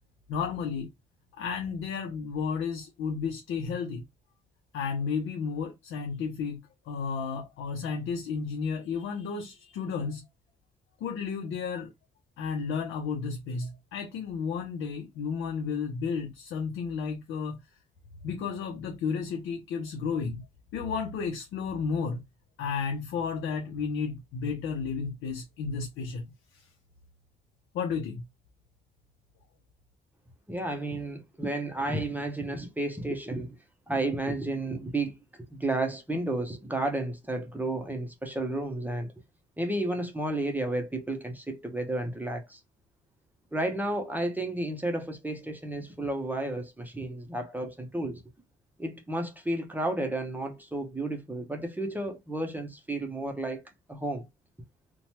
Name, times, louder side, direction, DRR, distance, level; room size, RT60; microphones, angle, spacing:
voice 1, 0.3-0.9 1.3-4.0 4.7-6.6 6.9-10.2 11.0-11.9 12.4-17.6 18.2-20.4 20.7-22.2 22.6-26.7 27.7-28.2, left 5 dB, 80° left, 0.6 m, -32 dB
voice 2, 30.5-33.6 33.9-35.2 35.5-39.1 39.6-42.6 43.5-48.2 48.8-53.6 53.9-54.3, right 2 dB, 10° right, 0.6 m, -32 dB
2.9 x 2.2 x 2.8 m
cardioid pair, 90°, 20 cm